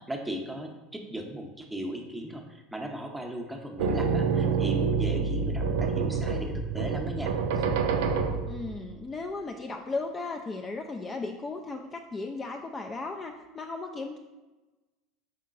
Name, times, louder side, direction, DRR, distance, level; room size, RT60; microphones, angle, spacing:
voice 1, 0.0-7.6, right 1 dB, 5° right, 2 dB, 0.7 m, -37 dB
sound 1, 3.8-8.9, right 5 dB, 70° right, 0.3 m, -27 dB
voice 2, 8.5-14.2, left 3 dB, 25° left, 3 dB, 0.3 m, -36 dB
5.4 x 3.7 x 2.5 m, 1.1 s
hypercardioid pair, 75°, 0 cm